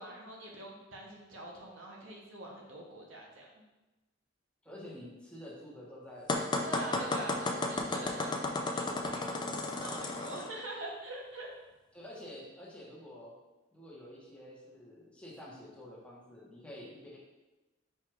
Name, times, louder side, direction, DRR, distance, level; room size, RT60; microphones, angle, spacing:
voice 1, 0.0-3.6 6.6-8.5 8.7-11.5, right 1 dB, 75° right, -2 dB, 0.9 m, -44 dB
voice 2, 4.6-6.3 6.7-7.5 11.9-13.3 13.7-17.2, left 1 dB, 5° left, -6 dB, 0.9 m, -49 dB
sound 1, 6.3-10.5, left 2 dB, 25° left, 0.4 m, -33 dB
4.4 x 2.4 x 4.7 m, 1.1 s
head